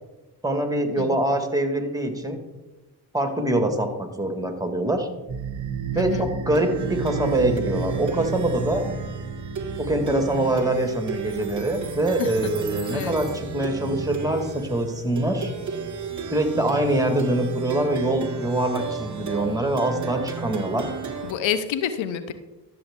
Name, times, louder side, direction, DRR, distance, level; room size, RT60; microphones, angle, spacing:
voice 1, 0.4-2.4 3.1-5.1 6.0-8.8 9.8-15.5 16.3-20.9, right 1 dB, 10° right, 5 dB, 1.9 m, -24 dB
Plucked string instrument, 5.3-21.3, right 5 dB, 40° right, 1.9 m, -32 dB
voice 2, 5.9-6.3 12.2-12.5 12.9-13.2 21.2-22.3, left 9 dB, 75° left, 11 dB, 0.9 m, -28 dB
12.5 x 7.5 x 3.7 m, 1.1 s
supercardioid pair, 55°, 46 cm